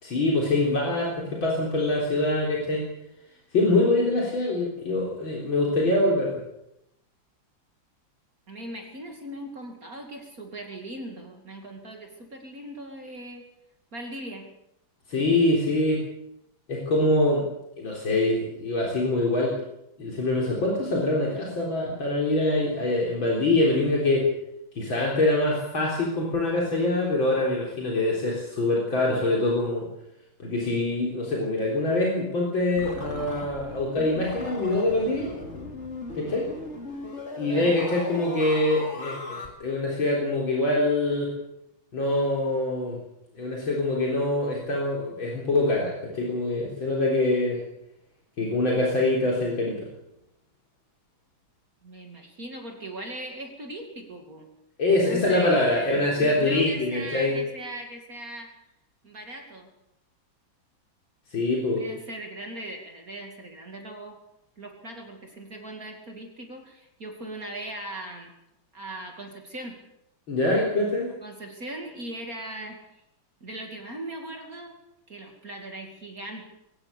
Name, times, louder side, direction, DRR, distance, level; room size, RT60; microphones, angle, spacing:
voice 1, 0.0-2.8 3.5-6.4 15.1-16.0 16.7-17.4 17.8-19.5 20.0-24.3 24.7-29.9 30.4-35.3 36.1-36.5 37.4-41.3 41.9-43.0 43.3-47.6 48.4-49.8 54.8-57.3 61.3-61.9 70.3-71.1, left 2 dB, 75° left, -3 dB, 4.6 m, -24 dB
voice 2, 8.5-13.5 13.9-14.5 37.4-37.8 51.8-54.5 55.0-58.5 59.0-59.7 61.7-64.2 64.6-68.3 68.7-69.8 71.2-72.8 73.4-74.8 75.1-76.5, right 1 dB, 45° right, 3 dB, 2.8 m, -39 dB
sound 1, 32.8-39.5, left 2 dB, 35° left, 3.3 m, -38 dB
22.0 x 18.0 x 6.8 m, 0.83 s
omnidirectional pair, 2.2 m